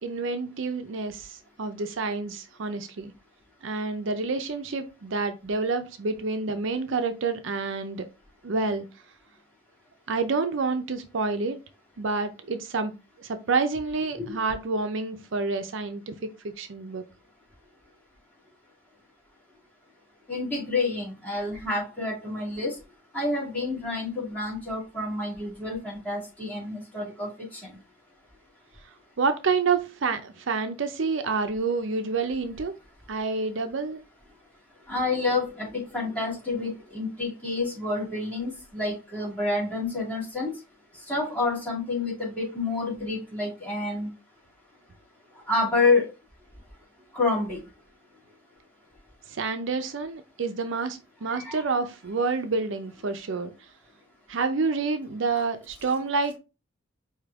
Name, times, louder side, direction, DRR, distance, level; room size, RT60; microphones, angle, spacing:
voice 1, 0.0-3.1 3.6-8.0 8.4-8.8 10.1-11.6 12.0-12.9 13.2-16.2 16.4-17.0 29.2-32.8 33.1-34.0 49.3-53.5 54.3-56.4, right 4 dB, 70° right, 0.5 m, -28 dB
voice 2, 20.3-22.8 23.1-27.6 34.9-40.5 41.1-44.1 45.5-46.1 47.1-47.6 51.3-51.6, left 3 dB, 10° left, 2.3 m, -28 dB
5.0 x 2.8 x 3.5 m
head